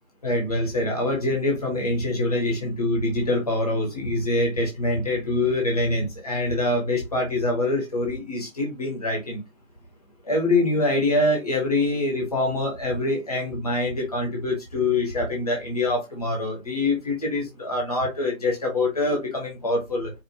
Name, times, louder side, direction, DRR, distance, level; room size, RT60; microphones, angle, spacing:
voice 1, 0.2-9.4 10.3-20.1, left 2 dB, 25° left, 0 dB, 1.0 m, -24 dB
4.8 x 2.1 x 3.1 m, 0.22 s
figure-of-eight pair, 160°, 42 cm